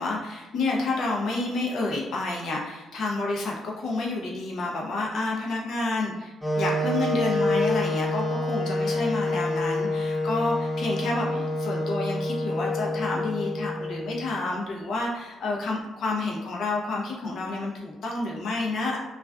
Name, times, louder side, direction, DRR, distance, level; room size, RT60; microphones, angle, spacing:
voice 1, 0.0-19.0, left 2 dB, 70° left, -2 dB, 0.6 m, -29 dB
Wind instrument woodwind instrument, 6.4-14.4, left 2 dB, 5° left, 0.5 m, -27 dB
2.4 x 2.3 x 2.2 m, 1.1 s
cardioid pair, 90°, 0 cm